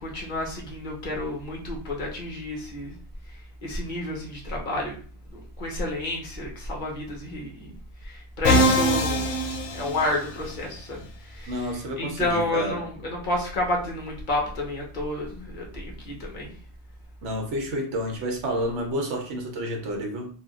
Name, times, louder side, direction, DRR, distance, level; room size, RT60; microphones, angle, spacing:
voice 1, 0.0-3.0 3.6-5.0 5.3-7.7 8.0-9.3 9.7-11.7 12.0-16.5, left 1 dB, 45° left, -1 dB, 0.9 m, -30 dB
Musical instrument, 8.4-10.5, equal, 85° left, 0.9 m, -22 dB
voice 2, 11.5-12.8 17.2-20.3, equal, 85° right, 2 dB, 1.0 m, -30 dB
3.4 x 2.2 x 2.4 m, 0.44 s
omnidirectional pair, 1.2 m